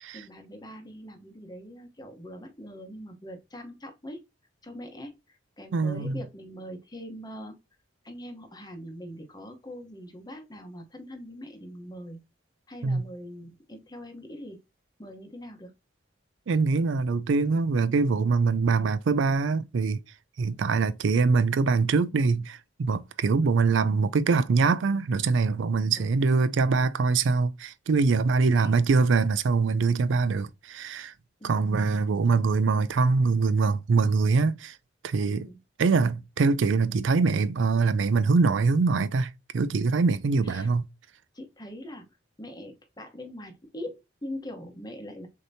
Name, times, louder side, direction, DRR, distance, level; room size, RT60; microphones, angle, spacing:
voice 1, 0.1-4.2 4.6-7.5 8.0-12.2 12.7-14.6 15.0-15.7 20.5-20.7 26.0-26.1 28.6-28.7 31.4-31.7 32.3-32.4 35.3-35.6 40.4-40.7 41.3-42.0 42.4-45.3, equal, 20° left, 0.9 m, -42 dB
voice 2, 5.7-6.2 12.8-13.0 16.5-20.0 20.4-31.1 31.4-34.8 35.0-35.5 35.8-40.9, right 4 dB, 80° right, 0.4 m, -23 dB
6.5 x 2.9 x 2.7 m
head